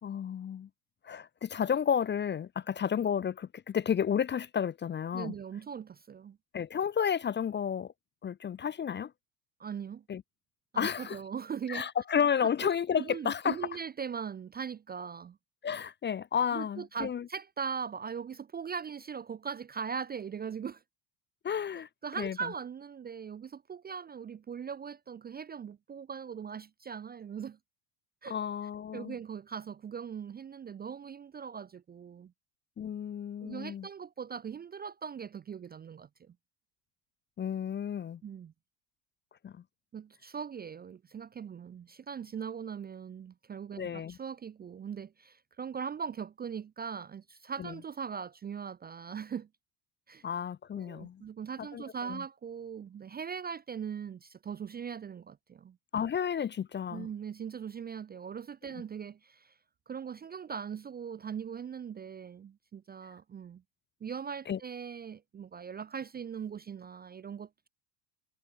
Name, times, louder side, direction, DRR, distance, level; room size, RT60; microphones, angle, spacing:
voice 1, 0.0-0.7 1.0-5.4 6.5-7.9 8.2-9.1 10.1-10.2 10.8-11.2 11.7-13.6 15.6-17.3 21.4-21.9 22.2-22.4 28.3-29.2 32.8-33.9 37.4-38.2 39.4-39.6 43.8-44.2 47.6-47.7 50.2-51.2 51.6-52.2 55.9-57.1 64.5-64.6, left 8 dB, 25° left, 0.6 m, -32 dB
voice 2, 5.1-6.4 9.6-10.0 10.7-11.9 13.0-15.4 16.5-20.8 22.0-27.6 28.2-28.4 28.9-32.3 33.4-36.3 38.2-38.5 39.9-49.5 50.1-50.2 50.7-55.8 56.9-59.5 59.9-63.6 64.0-67.7, right 7 dB, 20° right, 0.5 m, -40 dB
supercardioid pair, 90°, 48 cm